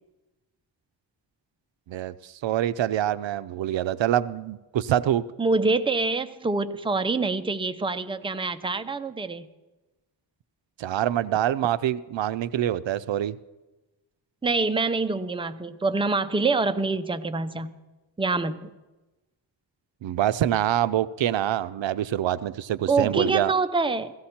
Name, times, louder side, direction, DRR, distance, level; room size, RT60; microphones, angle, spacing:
voice 1, 1.9-5.2 10.8-13.4 20.0-23.5, right 11 dB, 80° right, 15 dB, 0.5 m, -25 dB
voice 2, 5.4-9.5 14.4-17.7 18.2-18.7 22.9-24.1, right 3 dB, 10° right, 10 dB, 0.5 m, -25 dB
16.5 x 14.5 x 4.3 m, 1.1 s
wide cardioid pair, 115°, 44 cm